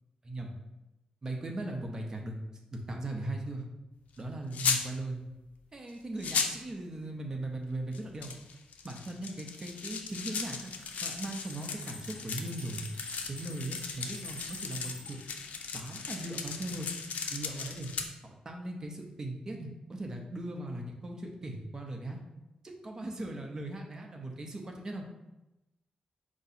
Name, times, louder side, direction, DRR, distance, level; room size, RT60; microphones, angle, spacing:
voice 1, 0.2-0.5 1.2-2.4 2.7-3.7 4.2-5.2 5.7-8.3 8.8-10.7 11.0-12.8 13.3-15.2 15.7-16.9 17.3-17.9 18.2-22.2 22.6-25.1, right 2 dB, 25° right, 1 dB, 0.6 m, -38 dB
sound 1, 4.5-4.8 5.9-6.0 6.2-6.6 7.9-18.0, left 6 dB, 90° left, 0.5 m, -36 dB
sound 2, 9.6-15.1, left 2 dB, 50° left, 1.5 m, -47 dB
4.6 x 2.7 x 4.0 m, 0.95 s
wide cardioid pair, 180°, 3 cm